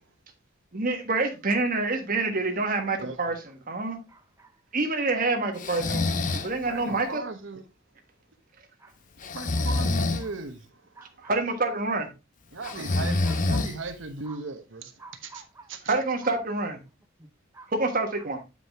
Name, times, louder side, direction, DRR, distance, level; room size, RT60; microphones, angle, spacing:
voice 1, 0.7-3.4 3.7-4.0 4.7-7.2 11.3-12.1 15.9-16.8 17.7-18.4, right 3 dB, 45° right, 1.4 m, -27 dB
voice 2, 3.0-3.4 6.5-7.7 9.3-10.8 12.5-15.4 15.7-15.9, right 3 dB, 70° right, 1.0 m, -38 dB
voice 3, 4.1-4.5 6.4-6.5 8.8-8.9 9.3-9.5 11.0-11.3 12.6-12.7 13.3-13.6 14.3-14.4 15.0-15.7 16.2-16.3 17.2-17.7, right 4 dB, 15° right, 0.4 m, -49 dB
Breathing, 5.6-6.5 9.2-10.2 12.6-14.0, left 2 dB, 40° left, 0.7 m, -26 dB
8.3 x 4.9 x 3.5 m
head